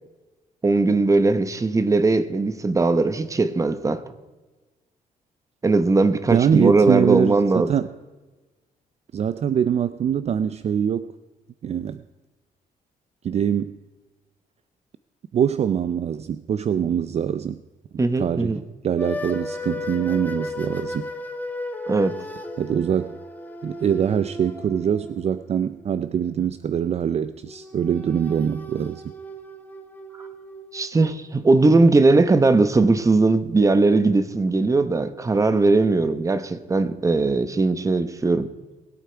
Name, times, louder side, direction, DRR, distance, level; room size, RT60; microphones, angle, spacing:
voice 1, 0.6-4.0 5.6-7.7 18.0-18.6 21.9-22.2 30.7-38.5, right 3 dB, 20° right, 1.0 m, -19 dB
voice 2, 6.3-7.9 9.1-11.1 11.6-12.0 13.2-13.8 15.3-17.6 18.2-18.5 18.8-21.1 22.6-23.2 23.6-29.0, right 8 dB, 45° right, 0.5 m, -23 dB
sound 1, 19.0-26.3 27.4-33.5, left 1 dB, 10° left, 1.3 m, -36 dB
21.5 x 8.5 x 4.5 m
cardioid pair, 115°, 15 cm